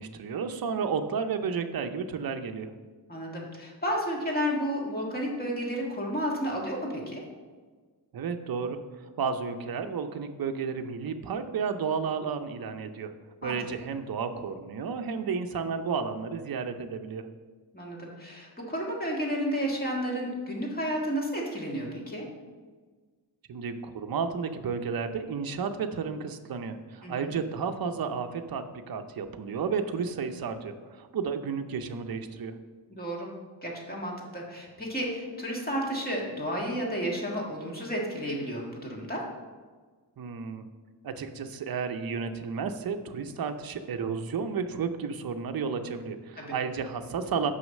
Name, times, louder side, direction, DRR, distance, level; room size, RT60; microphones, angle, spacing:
voice 1, 0.0-2.7 8.1-13.1 13.4-17.3 23.5-32.5 40.2-40.7 41.0-47.5, right 5 dB, 55° right, 7 dB, 0.6 m, -32 dB
voice 2, 3.1-7.2 13.4-13.5 17.7-22.2 27.0-27.3 32.9-33.3 33.6-39.2 46.4-46.5, equal, 20° left, -2 dB, 1.7 m, -32 dB
6.3 x 5.6 x 6.3 m, 1.4 s
wide cardioid pair, 175°, 43 cm